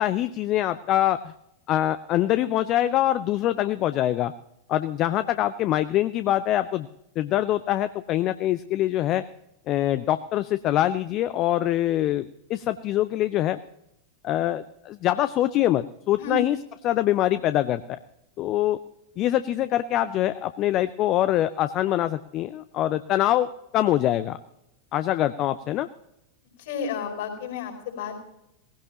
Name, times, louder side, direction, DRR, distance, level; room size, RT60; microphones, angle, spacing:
voice 1, 0.0-1.3 1.7-4.3 4.7-6.9 7.2-9.2 9.7-13.6 14.2-16.6 16.8-18.0 18.4-18.8 19.2-24.4 24.9-25.9, left 13 dB, 35° left, 13 dB, 0.5 m, -24 dB
voice 2, 26.6-28.2, left 5 dB, 55° left, 3 dB, 4.8 m, -32 dB
18.5 x 16.0 x 2.9 m, 0.83 s
figure-of-eight pair, 90°, 0 cm